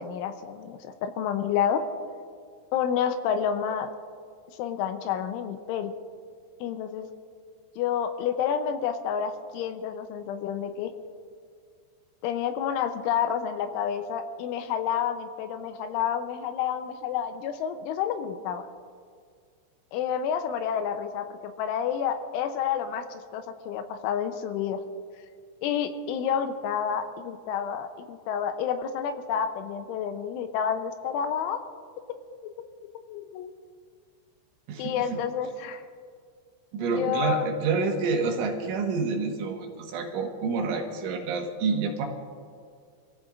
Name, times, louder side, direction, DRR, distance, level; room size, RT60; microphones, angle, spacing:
voice 1, 0.0-1.8 2.7-3.9 4.6-5.9 6.6-7.1 7.8-10.9 12.2-18.7 19.9-24.8 25.6-31.6 32.4-32.7 32.9-33.6 34.8-35.8 36.8-37.5, left 8 dB, 85° left, 8 dB, 3.1 m, -29 dB
voice 2, 36.7-42.1, right 4 dB, 75° right, 1 dB, 3.9 m, -28 dB
27.5 x 15.0 x 2.5 m, 2.1 s
omnidirectional pair, 5.6 m